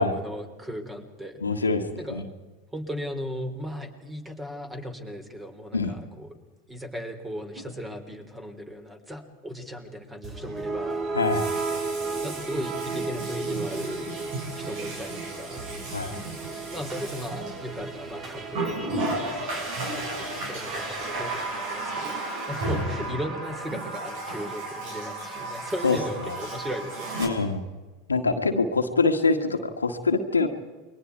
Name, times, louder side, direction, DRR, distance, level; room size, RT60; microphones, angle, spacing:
voice 1, 0.0-1.4 2.0-2.2 2.7-6.4 6.7-11.1 12.2-14.1 14.6-15.7 16.7-19.1 19.8-22.2 22.5-27.4, equal, 10° right, 7 dB, 3.7 m, -37 dB
voice 2, 1.4-1.8 2.1-2.3 5.7-5.9 11.1-11.5 15.9-16.2 25.8-26.0 26.2-26.4 27.2-27.6 28.1-30.5, left 3 dB, 90° left, 5 dB, 1.6 m, -24 dB
Water tap faucet, 7.6-7.7 11.1-18.0 18.5-27.3, right 2 dB, 55° right, 7.4 m, -34 dB
sound 1, 10.2-22.6, right 3 dB, 35° right, 4.0 m, -35 dB
29.0 x 22.5 x 4.7 m, 1.3 s
figure-of-eight pair, 85°, 0 cm